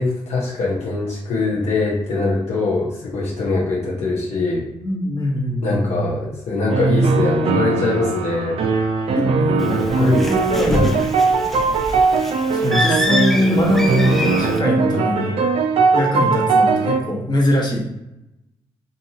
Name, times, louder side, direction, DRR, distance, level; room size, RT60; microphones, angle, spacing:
voice 1, 0.0-4.7 5.6-8.6 9.7-10.9, left 3 dB, 65° left, -5 dB, 0.8 m, -22 dB
voice 2, 4.8-6.1 9.1-9.8 10.3-11.0 12.5-15.4 15.9-17.8, left 1 dB, 35° left, -3 dB, 1.1 m, -22 dB
sound 1, 6.7-17.0, right 4 dB, 55° right, 0.4 m, -19 dB
Bird, 9.6-14.6, left 1 dB, ahead, 0.6 m, -26 dB
2.6 x 2.6 x 2.7 m, 0.88 s
hypercardioid pair, 40°, 12 cm